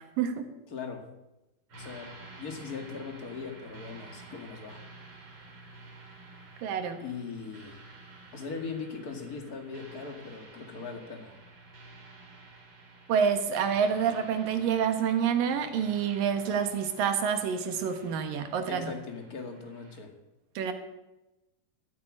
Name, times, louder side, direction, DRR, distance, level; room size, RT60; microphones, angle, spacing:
voice 1, 0.7-1.1 1.8-4.8 7.0-7.8 8.3-11.4 18.7-20.1, left 5 dB, 30° left, 4 dB, 2.1 m, -40 dB
sound 1, 1.7-20.0, right 2 dB, 40° right, 3.5 m, -51 dB
voice 2, 6.6-7.0 13.1-18.9 20.6-20.7, right 7 dB, 90° right, 8 dB, 3.1 m, -28 dB
15.0 x 9.4 x 8.7 m, 0.97 s
omnidirectional pair, 3.8 m